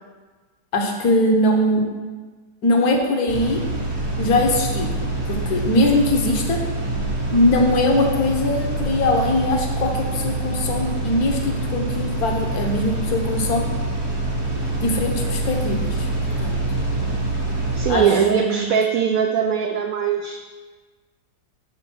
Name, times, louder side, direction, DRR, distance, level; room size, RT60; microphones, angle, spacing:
voice 1, 0.7-1.8 2.6-3.6 4.2-4.9 5.3-6.6 7.3-13.7 14.8-16.1 16.4-16.6 16.8-17.3 17.9-18.0 18.3-18.6, left 1 dB, 60° left, 2 dB, 1.4 m, -21 dB
sound 1, 3.3-17.9, right 2 dB, 20° right, 0.7 m, -25 dB
voice 2, 17.7-20.4, right 7 dB, 70° right, 3 dB, 0.8 m, -20 dB
6.6 x 4.5 x 6.0 m, 1.4 s
omnidirectional pair, 1.9 m